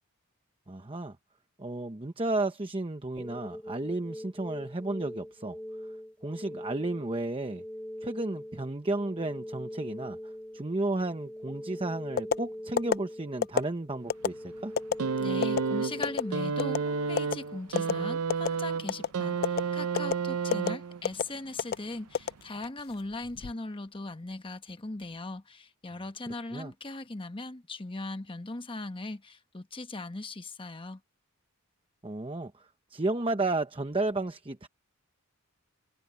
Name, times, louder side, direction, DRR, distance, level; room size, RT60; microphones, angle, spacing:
voice 1, 0.7-1.2 1.6-5.6 6.2-7.6 8.0-14.7 26.5-26.7 32.0-34.7, right 2 dB, 25° right, 0.9 m, -33 dB
sound 1, 3.2-18.2, equal, 5° left, 2.8 m, -42 dB
sound 2, 12.2-12.4 12.8-13.0 13.4-13.6 14.1-14.3 14.8-14.9 15.4-15.6 16.0-16.2 16.6-16.8 17.2-17.3 17.8-17.9 18.3-18.6 18.9-19.1 19.4-19.6 20.0-20.1 20.5-20.7 21.0-21.2 21.6-21.8 22.1-22.8 23.2-23.5, left 7 dB, 45° left, 0.4 m, -26 dB
sound 3, 15.0-21.2 22.2-22.3, right 5 dB, 80° right, 0.6 m, -31 dB
voice 2, 15.2-31.0, left 2 dB, 25° left, 1.1 m, -39 dB
head